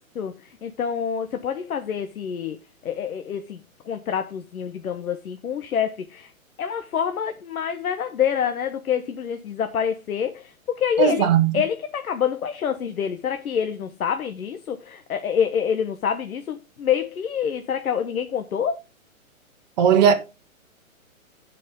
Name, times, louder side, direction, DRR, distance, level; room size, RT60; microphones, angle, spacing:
voice 1, 0.2-2.6 2.8-6.3 6.6-11.3 11.5-18.8, left 8 dB, 85° left, 1.2 m, -27 dB
voice 2, 11.0-11.5 19.8-20.1, right 8 dB, 30° right, 1.3 m, -17 dB
16.0 x 5.3 x 3.6 m
hypercardioid pair, 170°, 41 cm